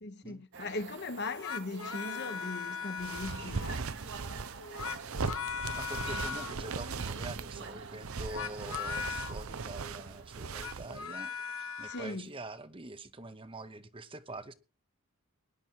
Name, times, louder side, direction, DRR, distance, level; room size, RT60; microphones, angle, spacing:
voice 1, 0.0-3.9 11.9-12.3, left 3 dB, 50° left, 1.1 m, -39 dB
sound 1, 0.5-12.1, right 4 dB, 55° right, 1.4 m, -49 dB
sound 2, 1.2-3.7 4.6-6.6 8.2-9.4 10.4-12.1, left 6 dB, 70° left, 1.5 m, -39 dB
sound 3, 3.0-11.1, right 5 dB, 75° right, 0.7 m, -39 dB
voice 2, 5.6-14.5, right 2 dB, 25° right, 0.9 m, -45 dB
19.5 x 10.5 x 4.7 m
head